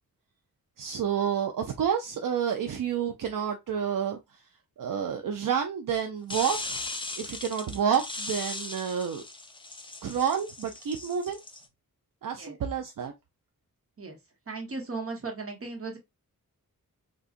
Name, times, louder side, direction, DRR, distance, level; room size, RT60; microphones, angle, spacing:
voice 1, 0.8-4.2 4.8-6.8 7.2-9.2 10.0-11.4 12.2-13.1, right 8 dB, 70° right, 0.5 m, -29 dB
sound 1, 6.3-11.6, left 2 dB, 15° left, 0.4 m, -38 dB
voice 2, 14.5-16.0, right 3 dB, 40° right, 1.0 m, -36 dB
3.8 x 2.3 x 2.4 m
wide cardioid pair, 130°, 35 cm